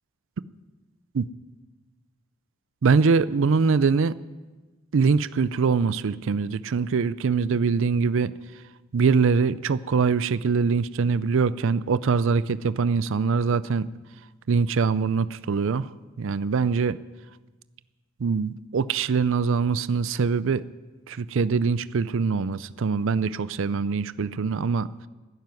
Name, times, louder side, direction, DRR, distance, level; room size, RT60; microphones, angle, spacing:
voice 1, 2.8-4.2 4.9-8.3 8.9-13.9 14.5-15.9 16.2-17.0 18.2-20.7 21.1-24.9, right 5 dB, 65° right, 16 dB, 0.5 m, -23 dB
12.5 x 10.5 x 9.4 m, 1.2 s
head